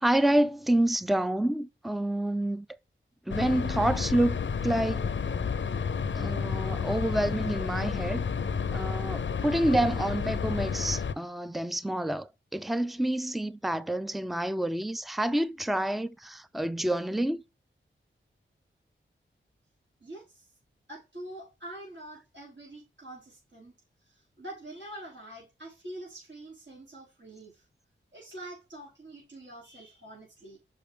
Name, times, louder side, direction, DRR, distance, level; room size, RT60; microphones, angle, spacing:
voice 1, 0.0-2.7 3.3-5.1 6.1-8.3 8.7-17.4, right 1 dB, ahead, 0.4 m, -28 dB
sound 1, 3.3-11.1, left 6 dB, 65° left, 0.6 m, -31 dB
voice 2, 20.0-20.5 20.9-23.7 24.0-27.6 28.1-30.6, right 1 dB, 65° right, 5.0 m, -45 dB
6.5 x 5.6 x 3.4 m
wide cardioid pair, 65°, 21 cm